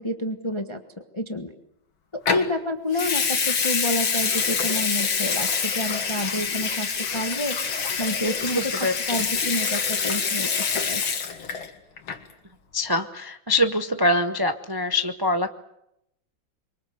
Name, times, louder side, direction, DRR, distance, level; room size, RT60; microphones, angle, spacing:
voice 1, 0.0-1.5 2.3-6.9 7.1-7.6 8.0-8.6 9.1-11.0, left 1 dB, 15° left, 7 dB, 1.2 m, -29 dB
Water tap faucet / Sink (filling or washing) / Liquid, 2.3-2.5 2.9-11.7 12.0-12.3, left 6 dB, 80° left, 2.7 m, -26 dB
voice 2, 8.5-8.9 12.7-15.5, left 1 dB, 30° right, 8 dB, 0.4 m, -24 dB
26.5 x 23.5 x 7.9 m, 0.82 s
omnidirectional pair, 2.1 m